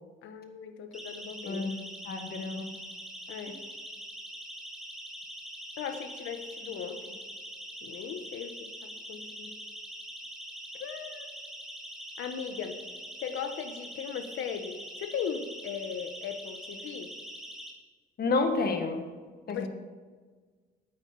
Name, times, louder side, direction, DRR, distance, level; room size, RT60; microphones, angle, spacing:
voice 1, 0.2-1.6 3.3-3.6 5.8-7.2 7.8-9.6 10.8-11.3 12.2-12.8 13.2-17.1 19.5-19.7, left 7 dB, 80° left, 8 dB, 1.1 m, -38 dB
Siren, 0.9-17.7, equal, ahead, 2.0 m, -43 dB
voice 2, 1.4-1.8 2.0-2.7 18.2-19.1 19.5-19.7, left 3 dB, 50° left, 5 dB, 1.6 m, -29 dB
9.0 x 8.8 x 5.7 m, 1.5 s
cardioid pair, 90°, 20 cm